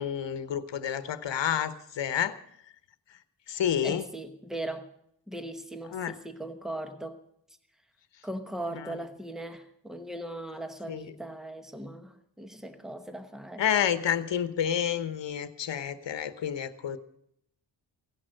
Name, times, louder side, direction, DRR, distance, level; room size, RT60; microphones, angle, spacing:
voice 1, 0.0-2.4 3.5-4.0 5.9-6.1 8.7-8.9 10.9-11.1 13.6-17.0, left 9 dB, 70° left, 1.1 m, -29 dB
voice 2, 3.8-4.9 5.3-7.2 8.2-13.6, right 1 dB, ahead, 1.0 m, -39 dB
16.5 x 11.0 x 6.4 m
wide cardioid pair, 180°, 45 cm